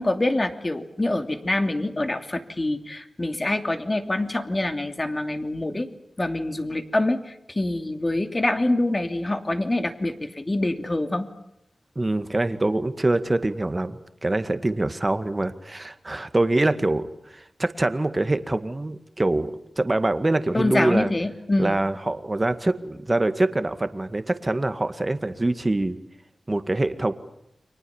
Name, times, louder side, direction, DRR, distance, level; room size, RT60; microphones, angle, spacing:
voice 1, 0.0-5.9 6.2-11.3 20.5-21.8, left 2 dB, 30° left, 7 dB, 2.8 m, -25 dB
voice 2, 12.0-19.5 19.8-21.1 21.6-26.0 26.5-27.1, right 2 dB, 30° right, 10 dB, 2.0 m, -24 dB
30.0 x 24.5 x 7.3 m, 0.82 s
wide cardioid pair, 75°, 0 cm